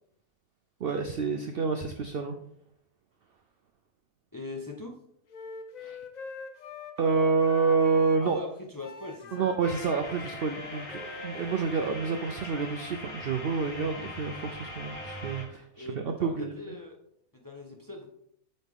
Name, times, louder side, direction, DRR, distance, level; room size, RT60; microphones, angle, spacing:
voice 1, 0.8-2.4 5.8-6.0 7.0-8.4 9.3-16.8, right 5 dB, 60° right, 5 dB, 0.6 m, -28 dB
voice 2, 4.3-5.0 8.2-9.5 15.8-17.0 17.3-18.1, left 2 dB, 20° left, 1 dB, 0.6 m, -40 dB
Wind instrument woodwind instrument, 5.3-8.5 8.8-12.2, left 4 dB, 80° left, 0.4 m, -44 dB
sound 1, 9.6-15.4, left 1 dB, 55° left, 2.6 m, -41 dB
8.1 x 4.1 x 3.6 m, 0.71 s
omnidirectional pair, 1.5 m